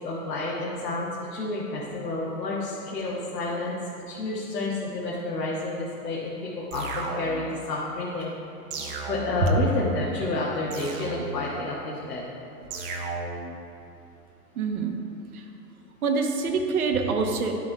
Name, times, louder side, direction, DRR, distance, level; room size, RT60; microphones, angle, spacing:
voice 1, 0.0-3.8 4.1-8.3 9.1-12.2, left 2 dB, 85° left, -6 dB, 1.5 m, -30 dB
sound 1, 6.7-7.6 8.7-9.6 10.7-11.6 12.7-13.6, right 3 dB, 35° right, 0.8 m, -34 dB
voice 2, 14.6-15.0 15.3-15.4 16.0-17.6, right 4 dB, 65° right, 3 dB, 1.0 m, -25 dB
12.0 x 5.8 x 2.3 m, 2.9 s
hypercardioid pair, 115°, 47 cm